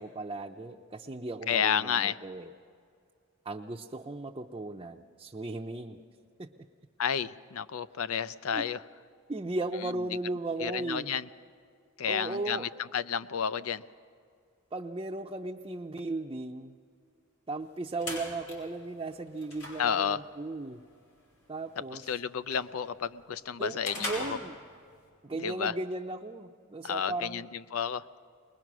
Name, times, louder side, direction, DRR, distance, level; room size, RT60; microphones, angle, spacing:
voice 1, 0.0-2.5 3.4-6.0 6.4-6.5 8.5-8.6 9.3-11.1 12.1-12.7 14.7-16.8 17.5-20.8 21.5-22.0 23.6-24.5 25.2-27.5, right 2 dB, 25° right, 0 dB, 0.6 m, -36 dB
voice 2, 1.5-2.2 7.0-8.8 9.8-9.9 10.6-11.3 12.0-13.8 19.8-20.2 22.1-24.4 25.4-25.7 26.8-28.0, left 7 dB, 70° left, 15 dB, 0.5 m, -31 dB
sound 1, 17.6-25.1, left 2 dB, 90° left, 5.2 m, -43 dB
21.0 x 21.0 x 6.1 m, 2.3 s
head